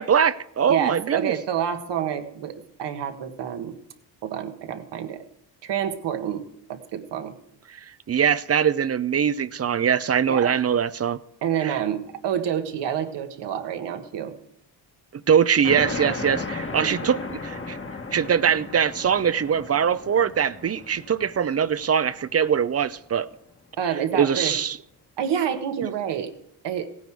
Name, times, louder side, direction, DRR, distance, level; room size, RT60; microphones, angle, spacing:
voice 1, 0.0-1.3 7.7-11.2 11.6-11.8 15.3-17.2 17.4-17.8 18.1-23.3 24.1-24.8, right 8 dB, 35° right, 0.6 m, -22 dB
voice 2, 0.7-3.7 4.2-5.2 5.6-6.4 6.7-7.3 10.3-10.5 11.4-14.3 16.8-17.1 23.8-24.5 25.2-26.3 26.6-26.9, right 9 dB, 75° right, 1.5 m, -28 dB
sound 1, 15.6-22.8, left 3 dB, 30° left, 1.4 m, -35 dB
16.5 x 9.4 x 4.7 m
cardioid pair, 75°, 42 cm